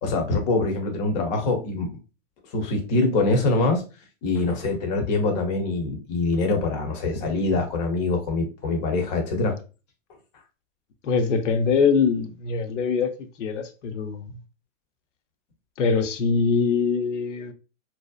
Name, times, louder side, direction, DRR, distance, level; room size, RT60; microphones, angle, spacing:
voice 1, 0.0-1.9 2.5-3.8 4.2-9.6, left 3 dB, 35° left, 0.8 m, -24 dB
voice 2, 11.0-14.3 15.8-17.5, left 5 dB, 70° left, 0.6 m, -23 dB
2.7 x 2.0 x 2.3 m
hypercardioid pair, 130°, 38 cm